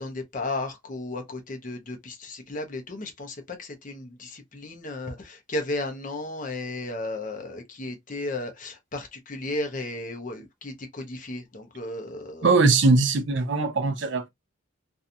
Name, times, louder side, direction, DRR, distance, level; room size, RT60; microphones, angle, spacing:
voice 1, 0.0-12.5, left 2 dB, 40° left, 0.6 m, -34 dB
voice 2, 12.4-14.3, right 3 dB, 60° right, 0.6 m, -21 dB
2.6 x 2.3 x 2.6 m
head